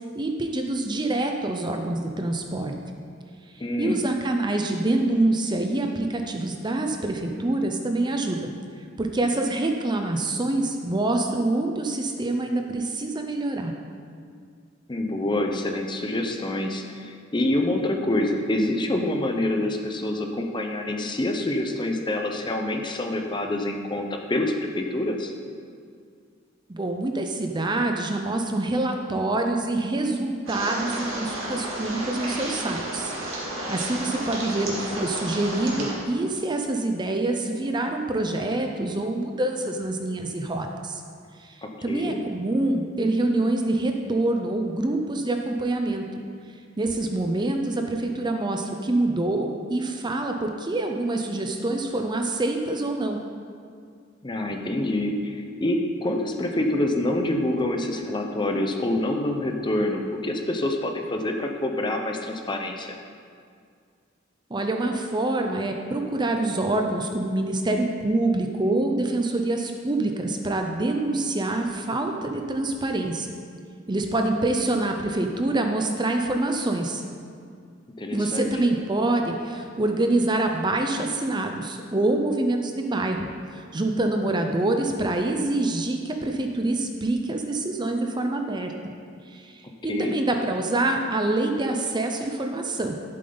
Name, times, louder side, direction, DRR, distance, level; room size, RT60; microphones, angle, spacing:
voice 1, 0.1-2.7 3.8-8.5 9.0-13.7 26.7-33.1 33.7-41.0 41.4-41.6 41.8-46.0 46.8-53.2 64.5-73.3 73.9-77.0 78.1-83.2 83.5-88.7 89.3-93.0, right 2 dB, 20° right, 4 dB, 0.6 m, -26 dB
voice 2, 3.6-4.0 14.9-25.3 41.6-42.2 54.2-62.9 78.0-78.5 89.9-90.2, left 1 dB, 25° left, 3 dB, 0.7 m, -26 dB
sound 1, 30.5-35.9, right 1 dB, 85° right, 2.0 m, -32 dB
11.0 x 7.6 x 3.9 m, 2.2 s
head